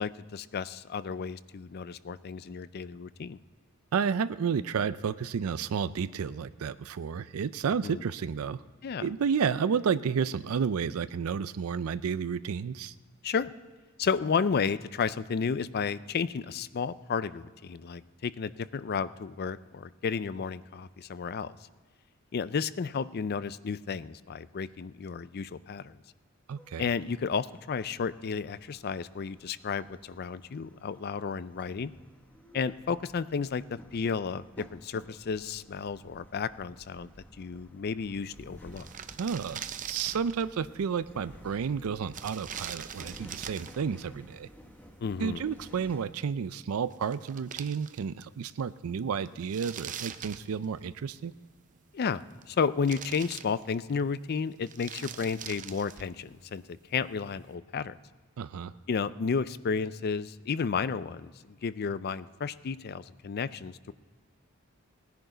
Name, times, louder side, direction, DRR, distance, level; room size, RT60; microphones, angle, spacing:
voice 1, 0.0-3.4 7.8-8.0 8.8-9.1 13.2-13.5 14.0-21.5 22.3-26.0 26.8-31.9 32.5-37.1 37.4-38.9 45.0-45.4 51.9-52.2 52.5-56.6 56.9-58.0 58.9-63.9, left 5 dB, 50° left, 16 dB, 0.4 m, -32 dB
voice 2, 3.9-8.6 9.0-12.9 26.5-26.9 39.2-44.5 45.2-51.3 58.4-58.7, right 6 dB, 90° right, 14 dB, 0.4 m, -31 dB
sound 1, 26.6-46.0, equal, 10° left, 1.0 m, -54 dB
sound 2, 38.3-38.4 38.6-40.5 42.1-43.9 46.6-46.7 46.9-48.3 48.6-48.7 49.3-51.0 52.0-52.6 52.8-54.0 54.5-56.2, right 9 dB, 35° right, 0.5 m, -42 dB
19.0 x 10.5 x 3.9 m, 1.5 s
head